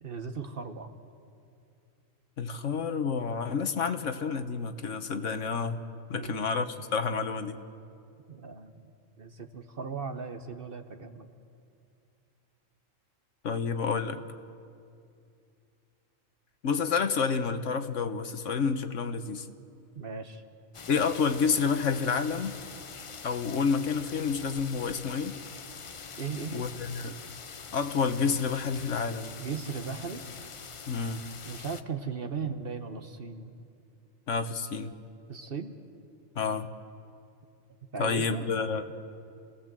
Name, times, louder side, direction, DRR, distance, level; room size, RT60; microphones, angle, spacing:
voice 1, 0.0-0.9 6.1-6.5 8.3-8.8 9.2-11.3 19.9-20.4 26.2-26.7 29.4-30.2 31.4-33.5 35.3-35.7 37.9-38.4, right 5 dB, 45° right, 7 dB, 1.2 m, -37 dB
voice 2, 2.4-5.8 6.1-7.6 13.4-14.2 16.6-19.5 20.9-22.6 23.2-25.4 26.5-27.2 27.7-29.4 30.9-31.2 34.3-34.9 36.3-36.7 38.0-38.8, left 5 dB, 65° left, 9 dB, 1.3 m, -29 dB
sound 1, 20.7-31.8, left 5 dB, 45° left, 0.4 m, -44 dB
29.0 x 17.5 x 7.5 m, 2.5 s
omnidirectional pair, 1.4 m